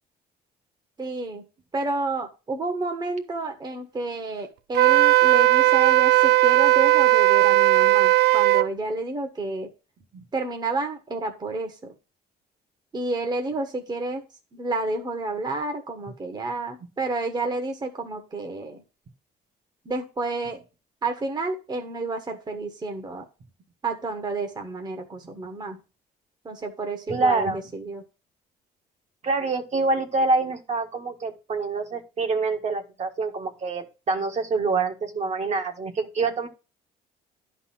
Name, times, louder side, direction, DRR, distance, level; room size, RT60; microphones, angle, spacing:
voice 1, 1.0-1.4 1.7-9.7 10.3-11.9 12.9-14.2 14.5-18.8 19.8-20.6 21.0-23.2 23.8-25.8 26.4-28.0, right 3 dB, 25° right, 4 dB, 1.4 m, -30 dB
Wind instrument woodwind instrument, 4.7-8.7, right 16 dB, 75° right, 0.4 m, -17 dB
voice 2, 27.1-27.6 29.2-36.5, right 3 dB, 40° right, 4 dB, 1.6 m, -26 dB
11.0 x 4.2 x 5.8 m, 0.31 s
cardioid pair, 110°, 17 cm